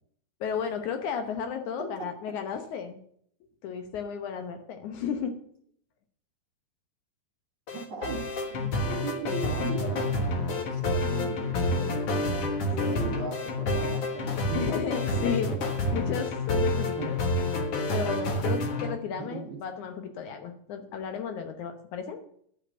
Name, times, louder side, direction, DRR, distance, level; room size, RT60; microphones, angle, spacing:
voice 1, 0.4-3.0 3.6-5.4 12.8-13.1 14.5-15.6 15.9-17.2 17.9-22.2, left 7 dB, 70° left, 6 dB, 2.4 m, -33 dB
voice 2, 1.8-2.4 7.7-14.7 15.1-15.6 17.0-17.1 19.1-19.6, right 4 dB, 45° right, 2 dB, 2.2 m, -38 dB
sound 1, 7.7-18.9, left 2 dB, 55° left, 2.1 m, -29 dB
10.5 x 5.8 x 7.7 m, 0.65 s
omnidirectional pair, 3.7 m